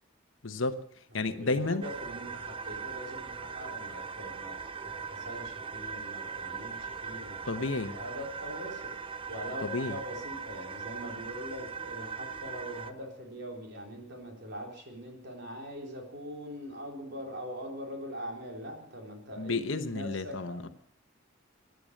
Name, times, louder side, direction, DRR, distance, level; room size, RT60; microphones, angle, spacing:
voice 1, 0.4-1.8 7.5-7.9 9.6-10.0 19.4-20.7, left 3 dB, 70° left, 1.1 m, -32 dB
voice 2, 1.2-4.5 4.8-7.4 7.9-20.7, equal, 55° right, 3.9 m, -42 dB
sound 1, 1.8-12.9, right 5 dB, 25° right, 0.6 m, -40 dB
15.0 x 10.5 x 6.6 m
head